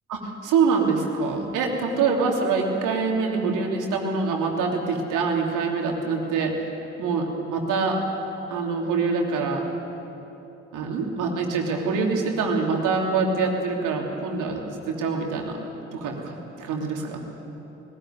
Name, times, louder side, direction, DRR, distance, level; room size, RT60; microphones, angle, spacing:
voice 1, 0.1-6.5 7.0-8.0 8.5-9.6 10.7-14.6 14.9-15.5 15.9-17.2, right 4 dB, 65° right, 1 dB, 3.1 m, -25 dB
19.5 x 16.5 x 9.5 m, 3.0 s
figure-of-eight pair, 45°, 34 cm